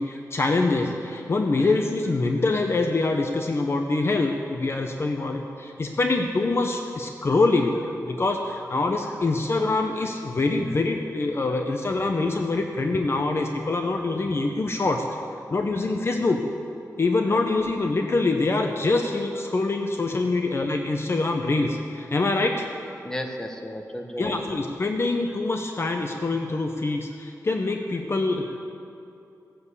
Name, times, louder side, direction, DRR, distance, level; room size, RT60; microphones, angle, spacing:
voice 1, 0.0-7.7 8.0-15.0 15.5-16.4 17.0-22.7 24.2-28.6, left 3 dB, 40° left, 4 dB, 0.8 m, -25 dB
voice 2, 22.9-24.4 28.4-28.5, equal, 10° left, 2 dB, 1.3 m, -35 dB
17.0 x 7.3 x 8.2 m, 2.7 s
wide cardioid pair, 135°, 7 cm